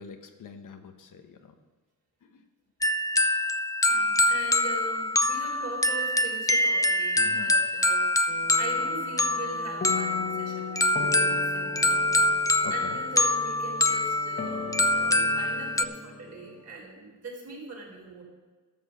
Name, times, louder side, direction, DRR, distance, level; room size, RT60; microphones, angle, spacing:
voice 1, 0.0-1.6 2.2-2.4 7.2-7.5 12.6-13.0, left 6 dB, 70° left, 6 dB, 1.2 m, -44 dB
sound 1, 2.8-15.8, left 1 dB, 10° left, 0.4 m, -25 dB
voice 2, 3.8-8.1 8.6-12.1 12.7-18.2, right 3 dB, 55° right, -2 dB, 4.2 m, -41 dB
sound 2, 8.3-16.6, left 5 dB, 35° left, 1.4 m, -38 dB
12.5 x 6.4 x 7.2 m, 1.3 s
cardioid pair, 115°, 33 cm